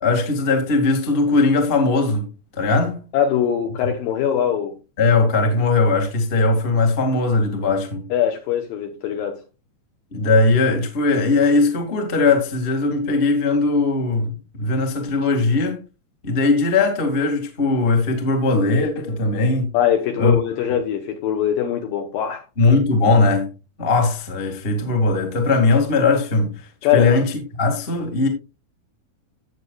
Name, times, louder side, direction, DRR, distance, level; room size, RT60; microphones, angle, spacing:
voice 1, 0.0-2.2 2.5-3.1 5.0-8.0 10.1-14.3 14.6-15.8 16.2-19.7 20.2-20.4 22.6-23.5 23.8-26.7 26.9-28.3, left 3 dB, 60° left, 0.5 m, -19 dB
voice 2, 3.1-4.8 8.1-9.4 19.7-22.4 26.8-27.1, left 9 dB, 80° left, 2.1 m, -22 dB
13.5 x 8.3 x 2.3 m
omnidirectional pair, 5.0 m